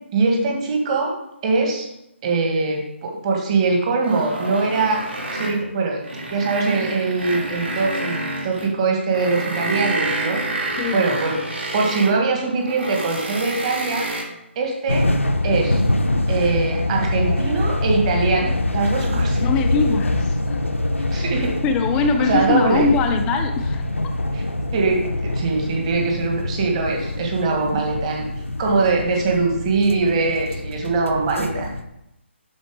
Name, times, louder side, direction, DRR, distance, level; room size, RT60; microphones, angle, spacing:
voice 1, 0.1-1.1 1.4-1.9 2.2-5.0 5.3-6.0 6.3-10.4 10.9-11.4 11.7-14.1 14.5-15.1 15.4-15.8 16.3-19.4 21.1-21.5 22.0-22.9 24.3-24.4 24.7-28.3 28.6-31.8, right 3 dB, 30° right, 1 dB, 1.6 m, -22 dB
sound 1, 4.0-5.7 6.0-8.7 9.1-12.2 12.6-14.2, right 2 dB, 60° right, 3.1 m, -28 dB
voice 2, 10.8-11.1 19.4-20.6 21.2-21.3 21.6-23.8, left 4 dB, 10° left, 5 dB, 0.4 m, -22 dB
sound 2, 14.9-31.8, left 1 dB, 80° left, 0.8 m, -24 dB
11.5 x 4.4 x 3.6 m, 0.83 s
figure-of-eight pair, 145°, 7 cm